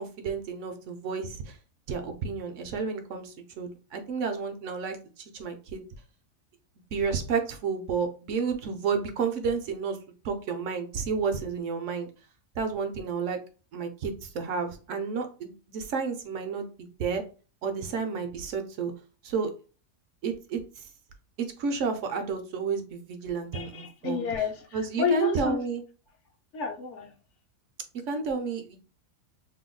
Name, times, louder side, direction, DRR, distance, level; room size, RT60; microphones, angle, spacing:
voice 1, 0.0-1.6 1.9-5.8 6.9-10.0 10.2-12.1 12.6-13.4 13.7-17.2 17.6-18.9 19.2-19.5 20.2-20.8 21.4-24.3 24.7-25.8 28.1-28.8, right 5 dB, 70° right, 6 dB, 0.9 m, -31 dB
voice 2, 23.5-25.6 26.5-27.1, left 6 dB, 65° left, 2 dB, 0.9 m, -30 dB
2.7 x 2.2 x 3.7 m, 0.36 s
omnidirectional pair, 1.4 m